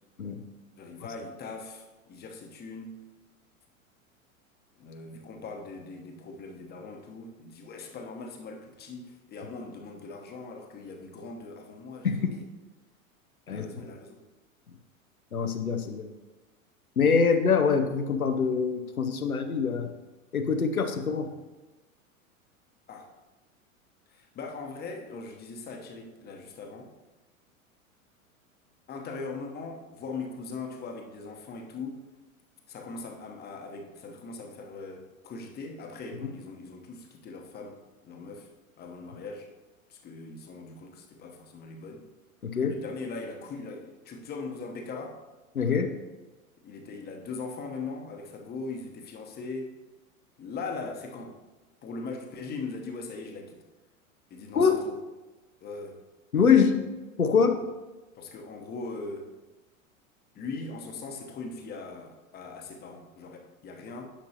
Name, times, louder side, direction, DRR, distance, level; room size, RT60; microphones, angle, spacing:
voice 1, 0.8-3.0 4.8-12.4 13.5-14.2 22.9-23.1 24.1-26.9 28.9-32.0 32.7-37.8 38.0-38.5 38.8-39.5 39.9-42.1 42.7-45.2 46.6-49.7 50.4-51.3 51.8-53.6 54.3-55.0 55.6-56.0 58.2-59.3 60.3-64.1, left 3 dB, 25° left, 3 dB, 1.0 m, -40 dB
voice 2, 12.0-12.3 13.5-13.7 15.3-16.1 17.0-19.9 20.3-21.3 42.4-42.8 45.5-45.9 54.5-54.8 56.3-56.8 57.2-57.6, left 6 dB, 85° left, 7 dB, 0.8 m, -24 dB
10.0 x 5.9 x 2.9 m, 1.1 s
figure-of-eight pair, 95°, 42 cm